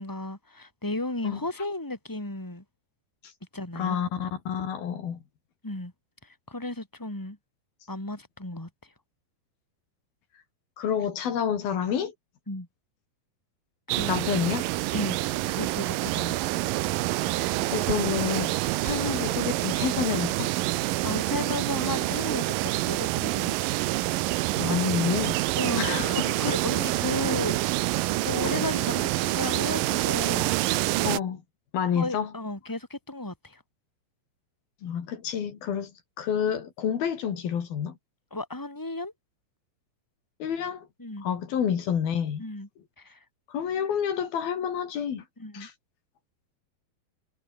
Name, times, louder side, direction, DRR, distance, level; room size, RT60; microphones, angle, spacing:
voice 1, 0.0-2.6 3.5-4.0 5.6-5.9 6.2-7.4 7.9-8.7 12.5-12.7 13.9-14.2 14.9-15.2 15.5-16.5 21.0-23.6 25.6-27.6 28.2-30.5 31.9-33.6 38.3-39.1 41.0-41.3 42.4-42.7 43.0-43.2 45.4-45.7, left 2 dB, 5° left, 4.7 m, -34 dB
voice 2, 3.8-5.2 10.8-12.1 14.1-14.7 17.7-20.5 24.6-25.4 25.8-26.5 28.4-28.6 31.0-31.4 31.7-32.3 34.8-35.9 36.2-38.0 40.4-40.9 41.2-42.4 43.5-45.2 45.5-45.7, left 8 dB, 80° left, 4.7 m, -29 dB
sound 1, 13.9-31.2, right 18 dB, 80° right, 2.3 m, -27 dB
omnidirectional pair, 4.2 m